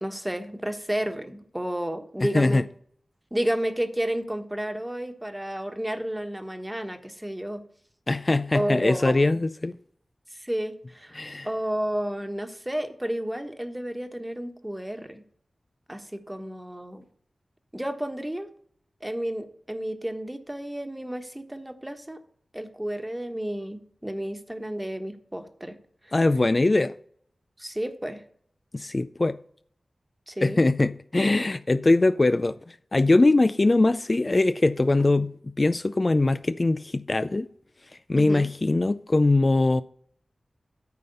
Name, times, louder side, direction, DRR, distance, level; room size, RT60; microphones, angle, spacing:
voice 1, 0.0-2.6 3.3-7.6 8.5-9.4 10.3-11.2 11.4-15.2 15.9-17.0 17.7-18.5 19.0-22.2 22.5-25.8 26.0-26.1 27.6-28.2 30.3-30.6 38.2-38.5, right 1 dB, 10° right, 1.3 m, -31 dB
voice 2, 2.2-2.6 8.1-9.7 11.1-11.5 26.1-26.9 28.7-29.4 30.4-37.5 38.1-39.8, left 2 dB, 40° left, 0.4 m, -22 dB
9.4 x 5.3 x 6.8 m
cardioid pair, 55°, 0 cm